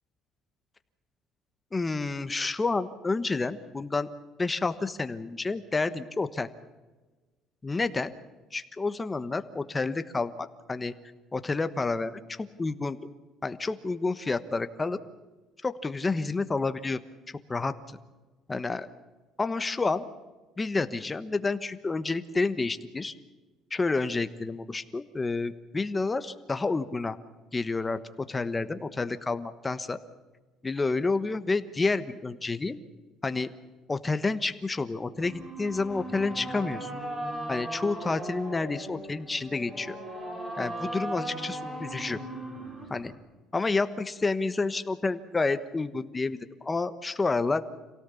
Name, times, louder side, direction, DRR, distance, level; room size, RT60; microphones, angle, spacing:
voice 1, 1.7-4.1 4.4-6.5 7.6-8.1 8.5-10.9 11.3-13.0 13.4-15.0 15.6-17.0 17.5-17.7 18.5-18.9 19.4-20.0 20.6-23.1 23.7-27.2 27.5-28.0 28.3-30.0 30.6-32.8 33.2-33.5 33.9-36.9 37.5-40.0 40.6-42.2 42.9-43.1 43.5-47.6, left 3 dB, 20° left, 11 dB, 1.2 m, -29 dB
sound 1, 35.2-43.2, right 1 dB, 20° right, 4.6 m, -37 dB
27.0 x 17.5 x 7.1 m, 1.3 s
cardioid pair, 130°, 0 cm